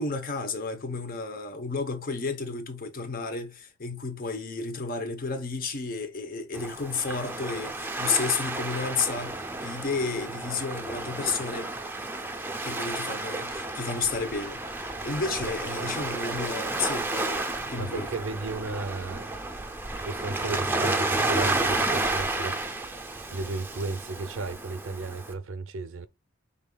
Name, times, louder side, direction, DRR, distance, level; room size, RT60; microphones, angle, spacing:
voice 1, 0.0-11.7 12.6-18.1, left 4 dB, 45° left, 0.8 m, -32 dB
Waves surf, 6.5-25.3, right 2 dB, 10° right, 0.5 m, -31 dB
voice 2, 17.8-19.4 19.9-23.0 23.3-26.1, right 3 dB, 80° right, 0.5 m, -34 dB
5.3 x 3.7 x 2.2 m
head